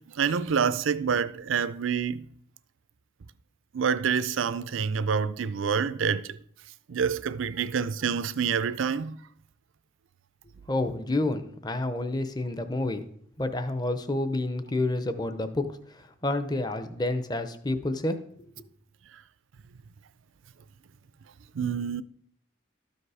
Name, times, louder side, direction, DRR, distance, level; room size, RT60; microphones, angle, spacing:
voice 1, 0.0-2.3 3.7-6.3 6.9-9.2 21.5-22.0, right 6 dB, 80° right, 0.5 m, -27 dB
voice 2, 10.7-13.0 13.4-15.7 16.2-18.2, left 2 dB, 20° left, 0.7 m, -29 dB
12.5 x 5.3 x 4.8 m
head